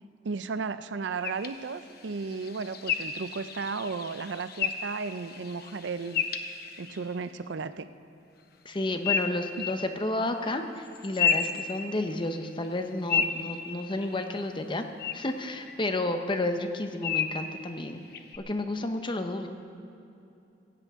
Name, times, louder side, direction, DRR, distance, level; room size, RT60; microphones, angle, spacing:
voice 1, 0.2-6.3 6.8-7.9, right 4 dB, 75° right, 12 dB, 0.5 m, -34 dB
sound 1, 1.2-7.1 9.0-9.8 10.8-12.3 12.6-14.3 15.0-15.1 15.6-15.7 17.0-17.4 18.1-18.4, left 7 dB, 55° left, 0.9 m, -32 dB
voice 2, 8.6-14.9 15.1-18.1 18.4-19.5, left 2 dB, 25° left, 6 dB, 0.8 m, -31 dB
16.5 x 16.0 x 3.6 m, 2.8 s
head